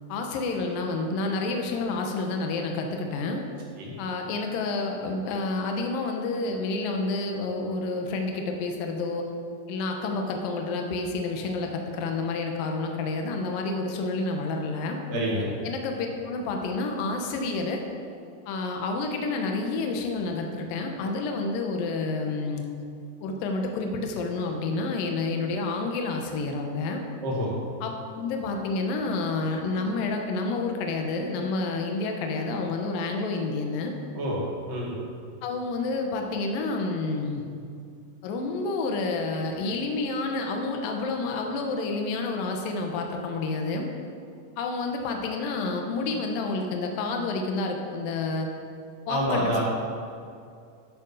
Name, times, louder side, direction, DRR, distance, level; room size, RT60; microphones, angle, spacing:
voice 1, 0.1-3.4 4.0-9.3 9.7-15.0 15.6-17.8 18.5-22.6 23.2-27.0 27.8-33.9 35.4-37.4 38.2-43.9 44.6-48.5 49.1-49.6, left 3 dB, 70° left, 3 dB, 2.6 m, -29 dB
voice 2, 15.1-15.5 27.2-27.5 34.2-34.4 34.7-34.9 49.1-49.6, equal, 60° right, -4 dB, 3.5 m, -27 dB
13.5 x 7.4 x 5.5 m, 2.4 s
omnidirectional pair, 4.6 m